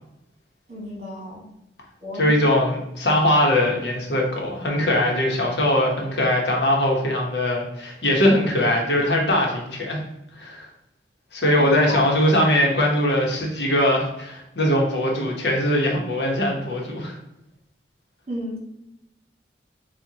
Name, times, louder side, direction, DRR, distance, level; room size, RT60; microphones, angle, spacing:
voice 1, 0.7-1.4 2.0-2.3 11.4-12.0 18.3-18.6, equal, 40° right, -3 dB, 1.6 m, -33 dB
voice 2, 2.2-10.0 10.4-10.7 11.3-17.2, left 1 dB, 70° left, 0 dB, 1.1 m, -21 dB
7.3 x 2.5 x 2.9 m, 0.87 s
head